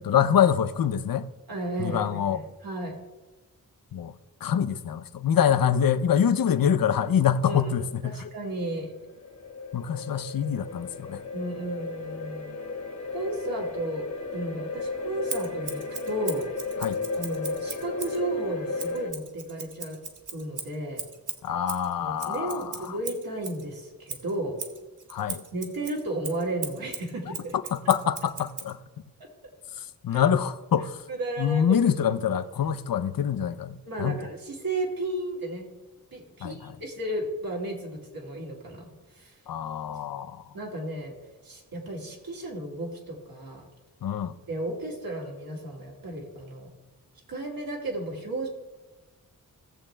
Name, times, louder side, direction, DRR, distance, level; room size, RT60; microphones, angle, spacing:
voice 1, 0.0-1.3 1.8-2.4 3.9-4.1 4.4-8.3 9.7-11.2 16.8-17.0 21.4-23.0 25.1-25.4 27.5-28.8 29.8-31.0 31.4-34.2 36.4-36.8 39.5-40.6 44.0-44.4, left 8 dB, 80° left, 0.6 m, -25 dB
voice 2, 1.5-3.0 7.5-8.9 11.3-12.5 13.1-16.5 17.2-20.0 20.3-21.0 22.0-24.6 25.5-27.5 29.2-29.3 30.1-30.2 31.1-32.1 33.8-35.7 36.1-38.9 39.1-39.3 40.5-41.1 41.4-43.7 44.5-46.7 47.3-48.5, right 1 dB, 85° right, 2.3 m, -33 dB
sound 1, 8.4-19.1, left 3 dB, 55° left, 1.3 m, -34 dB
Scissors, 15.3-18.2 18.8-23.6 24.1-28.7, right 5 dB, 60° right, 1.1 m, -39 dB
18.0 x 7.3 x 3.3 m
wide cardioid pair, 120°, 34 cm